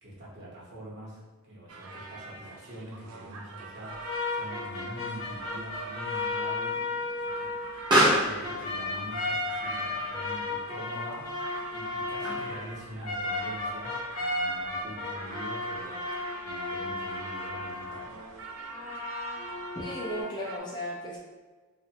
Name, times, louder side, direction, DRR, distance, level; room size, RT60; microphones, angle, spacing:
voice 1, 0.0-6.8 7.4-7.5 8.0-11.4 11.7-16.0 16.4-18.1, right 1 dB, 55° right, -6 dB, 0.8 m, -44 dB
sound 1, 1.7-20.6, right 4 dB, 80° right, 0.4 m, -45 dB
Explosion, 3.7-12.7, right 1 dB, 20° right, 0.6 m, -32 dB
sound 2, 3.9-8.2 8.4-18.3 18.7-20.2, left 2 dB, 80° left, 0.6 m, -34 dB
voice 2, 19.7-21.2, equal, 20° left, -4 dB, 0.4 m, -35 dB
2.5 x 2.1 x 2.7 m, 1.3 s
head